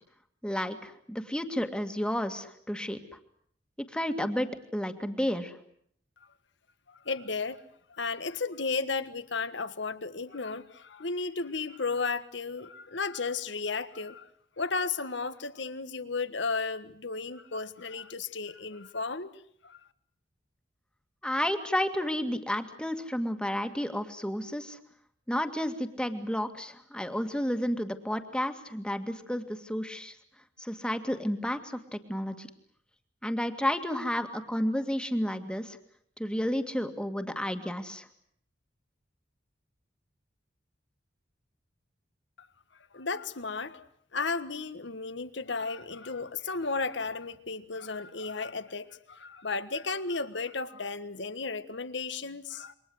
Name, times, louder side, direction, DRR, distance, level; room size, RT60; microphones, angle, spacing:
voice 1, 0.4-3.0 3.9-5.5 21.2-24.8 25.3-30.1 30.6-32.5 33.2-35.8 36.2-38.1, equal, 5° left, 2.1 m, -31 dB
voice 2, 6.9-14.3 14.6-19.8 42.4-42.5 42.9-43.9 44.1-52.7, left 4 dB, 70° left, 1.5 m, -34 dB
28.0 x 23.5 x 8.0 m
head